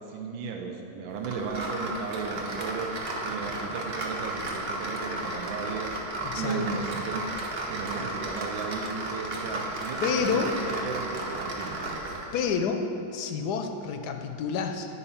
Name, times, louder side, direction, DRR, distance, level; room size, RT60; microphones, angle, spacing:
voice 1, 0.1-2.9 3.2-6.0 6.3-7.3 7.7-12.0, right 5 dB, 85° right, 2 dB, 1.5 m, -35 dB
sound 1, 1.2-12.3, right 2 dB, 50° right, 0.7 m, -34 dB
voice 2, 6.2-6.7 10.0-10.6 12.3-12.8 13.1-14.9, left 6 dB, 75° left, 6 dB, 1.0 m, -29 dB
9.0 x 4.1 x 5.6 m, 2.8 s
omnidirectional pair, 2.1 m